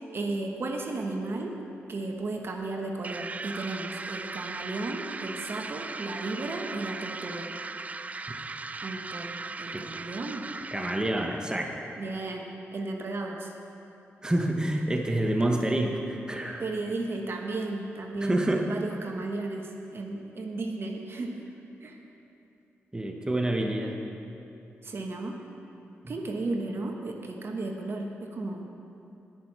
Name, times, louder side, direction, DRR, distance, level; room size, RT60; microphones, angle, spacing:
voice 1, 0.1-1.6 1.9-7.5 8.8-10.5 12.0-13.5 16.6-18.4 18.6-21.3 21.8-22.0 24.8-25.4 26.1-28.7, right 2 dB, 55° right, 2 dB, 1.1 m, -34 dB
sound 1, 3.0-11.3, right 3 dB, 30° right, 0.4 m, -38 dB
voice 2, 10.7-11.7 14.2-16.6 18.2-18.7 22.9-24.0 26.0-26.1, right 1 dB, 15° right, 2 dB, 1.2 m, -27 dB
18.5 x 6.2 x 4.7 m, 2.9 s
cardioid pair, 65°, 5 cm